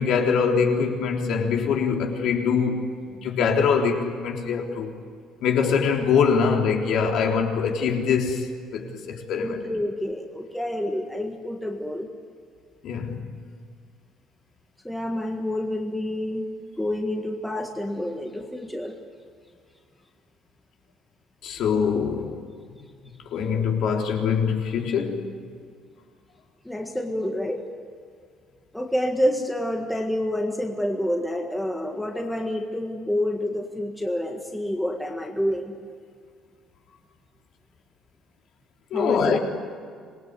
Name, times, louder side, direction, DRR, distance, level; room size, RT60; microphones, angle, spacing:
voice 1, 0.0-2.8 3.1-4.9 5.4-8.4 8.7-9.6 12.8-13.2 21.4-22.3 23.3-25.2 38.9-39.4, left 6 dB, 55° left, 1 dB, 3.7 m, -23 dB
voice 2, 9.4-12.1 14.8-16.5 16.8-19.0 26.6-27.7 28.7-35.7 38.9-39.4, left 1 dB, 5° left, 2 dB, 1.7 m, -28 dB
26.5 x 20.5 x 9.7 m, 2.1 s
cardioid pair, 170°, 0 cm